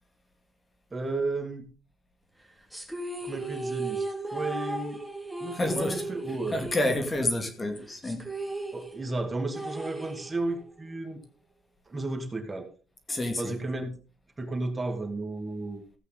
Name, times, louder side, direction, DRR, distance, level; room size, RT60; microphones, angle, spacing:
voice 1, 0.9-1.7 3.2-5.1 5.4-6.6 8.7-11.2 11.9-12.7 13.4-13.9 14.4-15.9, right 2 dB, 25° right, 2.4 m, -33 dB
sound 1, 2.7-7.4 7.6-7.7 8.0-10.7, right 2 dB, ahead, 3.6 m, -36 dB
voice 2, 5.5-6.0 6.5-8.3 13.1-13.5, left 1 dB, 25° left, 2.1 m, -29 dB
15.0 x 8.2 x 4.0 m
cardioid pair, 90°, 0 cm